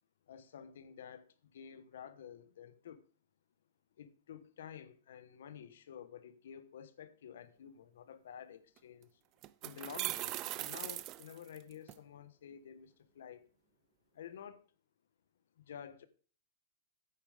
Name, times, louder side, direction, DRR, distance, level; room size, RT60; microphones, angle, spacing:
voice 1, 0.3-3.0 4.0-9.2 9.6-13.4 14.1-14.6 15.6-16.1, left 8 dB, 80° left, 1.2 m, -51 dB
sound 1, 8.8-8.9 9.4-11.9, right 16 dB, 30° right, 0.4 m, -40 dB
9.3 x 7.1 x 5.0 m
supercardioid pair, 160°, 0 cm